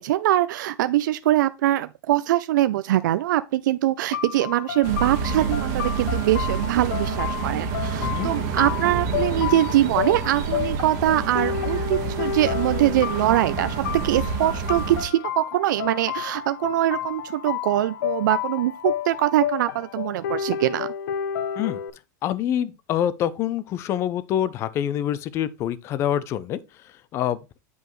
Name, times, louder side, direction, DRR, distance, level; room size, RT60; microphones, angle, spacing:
voice 1, 0.0-13.8 14.0-20.9, right 14 dB, 80° right, 0.4 m, -23 dB
sound 1, 4.1-21.9, left 9 dB, 75° left, 0.8 m, -31 dB
sound 2, 4.8-15.1, right 5 dB, 40° right, 1.4 m, -28 dB
voice 2, 8.0-8.3 21.6-21.8 22.2-26.6 27.1-27.4, left 10 dB, 25° left, 0.5 m, -26 dB
8.0 x 4.9 x 3.1 m
supercardioid pair, 160°, 10 cm